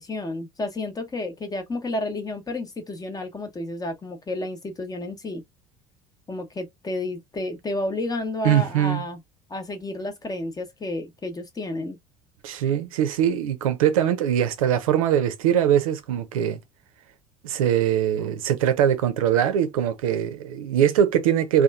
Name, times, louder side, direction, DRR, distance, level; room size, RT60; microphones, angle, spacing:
voice 1, 0.0-5.4 6.3-9.2 9.5-12.0, left 2 dB, 20° left, 0.8 m, -31 dB
voice 2, 8.4-9.0 12.4-16.6 17.4-21.6, right 10 dB, 70° right, 0.6 m, -22 dB
2.9 x 2.3 x 2.2 m
figure-of-eight pair, 60°, 19 cm